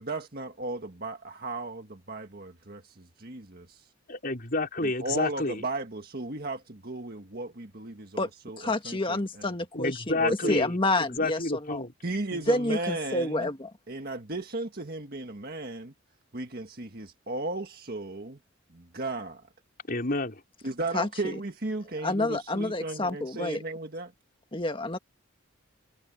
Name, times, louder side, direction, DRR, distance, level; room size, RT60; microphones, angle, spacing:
voice 1, 0.0-3.9 4.8-9.5 10.2-10.6 12.0-13.5 13.9-15.9 16.3-18.4 18.7-19.4 20.6-24.1, right 2 dB, 50° right, 1.7 m, -35 dB
voice 2, 4.1-5.6 9.7-10.8 11.2-11.9 19.9-20.4, left 2 dB, 45° left, 4.7 m, -29 dB
voice 3, 8.6-11.9 12.3-13.7 20.9-21.4 22.0-23.6 24.5-25.0, left 2 dB, 25° left, 1.7 m, -29 dB
head